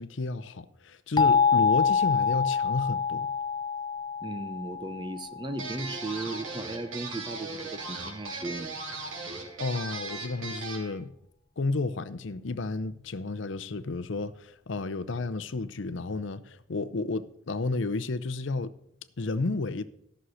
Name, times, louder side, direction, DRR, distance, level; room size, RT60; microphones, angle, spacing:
voice 1, 0.0-3.3 9.6-11.1 11.6-18.7 19.2-19.8, left 3 dB, 70° left, 0.6 m, -32 dB
sound 1, 1.2-5.9, left 5 dB, 20° left, 0.3 m, -26 dB
voice 2, 4.2-8.7, right 2 dB, 20° right, 0.7 m, -36 dB
sound 2, 5.6-10.9, right 3 dB, 85° right, 3.1 m, -38 dB
14.0 x 6.4 x 6.3 m
head